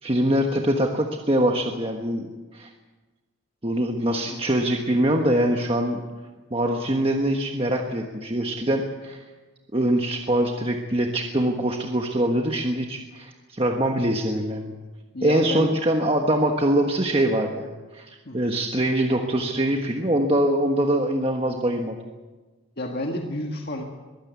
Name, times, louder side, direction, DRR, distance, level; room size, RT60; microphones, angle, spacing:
voice 1, 0.0-2.3 2.5-2.7 3.6-6.0 6.5-9.2 9.7-14.7 15.2-22.0, right 1 dB, 25° right, 2 dB, 1.3 m, -23 dB
voice 2, 15.1-15.8 18.3-18.4 22.8-23.8, left 1 dB, 50° left, 1 dB, 1.8 m, -30 dB
22.5 x 15.5 x 8.4 m, 1.3 s
head